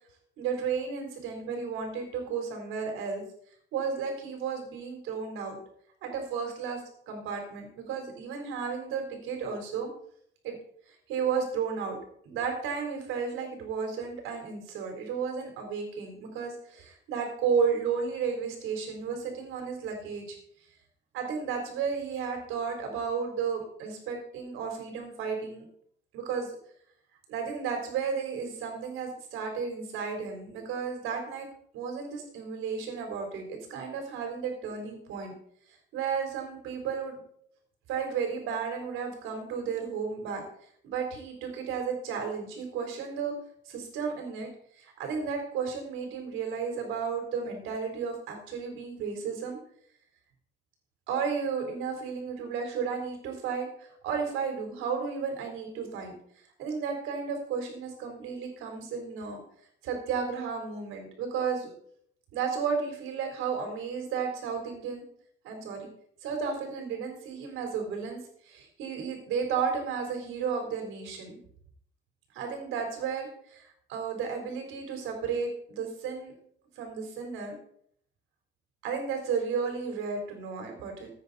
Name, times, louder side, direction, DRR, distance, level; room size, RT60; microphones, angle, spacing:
voice 1, 0.4-3.2 3.7-5.6 6.0-9.9 10.4-10.5 10.9-11.9 12.3-20.4 21.1-25.6 26.1-26.5 27.3-31.5 31.7-35.3 35.9-37.2 37.9-40.4 40.8-43.3 43.6-44.5 44.8-49.6 51.1-56.1 56.6-59.4 59.8-61.7 62.3-65.0 65.4-65.9 66.2-71.4 72.3-76.3 76.8-77.6 78.8-81.1, right 6 dB, 90° right, 3 dB, 3.9 m, -33 dB
15.0 x 9.2 x 4.2 m, 0.65 s
cardioid pair, 155°, 20 cm